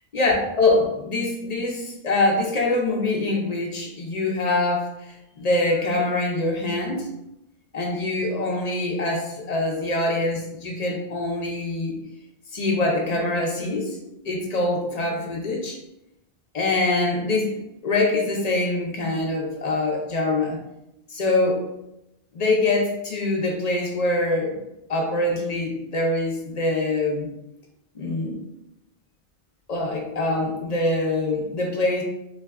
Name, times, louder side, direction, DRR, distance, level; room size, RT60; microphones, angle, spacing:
voice 1, 0.1-7.1 7.7-12.0 12.5-14.0 14.2-15.8 16.5-20.6 21.1-21.6 22.3-24.6 24.9-27.3 27.9-28.4 29.7-32.0, left 2 dB, 45° left, -1 dB, 0.7 m, -24 dB
4.1 x 2.2 x 2.3 m, 0.85 s
omnidirectional pair, 1.0 m